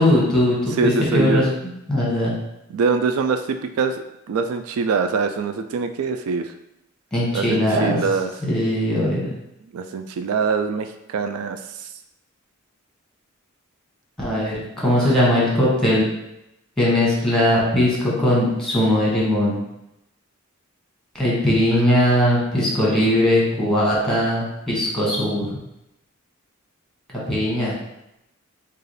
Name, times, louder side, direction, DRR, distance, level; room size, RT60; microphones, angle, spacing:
voice 1, 0.0-1.5 1.9-2.3 7.1-8.0 8.4-9.2 14.2-16.1 16.8-19.6 21.1-25.5 27.3-27.7, left 1 dB, 5° left, -5 dB, 1.3 m, -19 dB
voice 2, 0.8-1.4 2.7-6.5 7.3-8.3 9.7-11.9 15.0-15.1 21.7-21.8, right 5 dB, 90° right, 7 dB, 0.3 m, -24 dB
4.7 x 2.4 x 3.2 m, 0.86 s
head